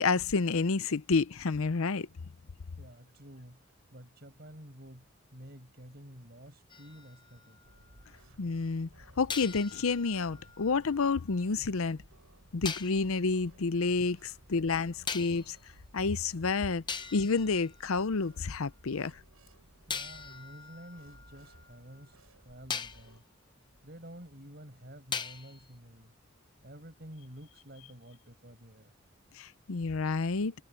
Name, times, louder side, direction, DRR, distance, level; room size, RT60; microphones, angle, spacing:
voice 1, 0.0-2.1 8.4-8.9 9.2-12.0 12.5-15.6 15.9-16.8 17.1-19.1 29.4-30.5, left 4 dB, 80° left, 0.7 m, -29 dB
voice 2, 2.8-3.6 3.9-7.6 13.9-14.1 19.9-22.2 22.4-23.2 23.8-26.1 26.6-28.9, equal, 45° right, 6.3 m, -50 dB
sound 1, 6.7-8.1 9.3-11.4 12.6-13.1 15.1-15.6 16.4-16.5 16.9-18.5 19.9-22.1 22.7-23.1 25.1-25.7, left 6 dB, 20° left, 0.7 m, -41 dB
sound 2, 7.6-23.2, right 1 dB, 80° right, 8.0 m, -59 dB
head